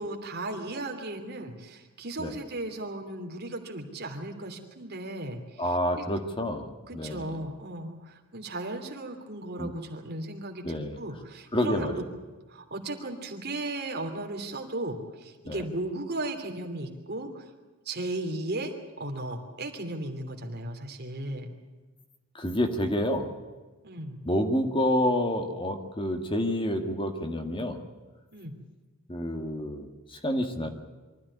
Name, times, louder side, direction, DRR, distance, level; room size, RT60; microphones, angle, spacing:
voice 1, 0.0-6.0 6.9-11.9 12.5-17.5 17.8-21.5 23.8-24.2 28.3-28.6, right 2 dB, 50° right, 4 dB, 3.0 m, -36 dB
voice 2, 5.6-7.4 9.6-9.7 10.6-11.0 11.5-12.1 15.5-15.6 22.3-23.3 24.3-27.8 29.1-30.7, left 1 dB, 25° left, 5 dB, 1.9 m, -28 dB
24.0 x 14.0 x 9.8 m, 1.3 s
head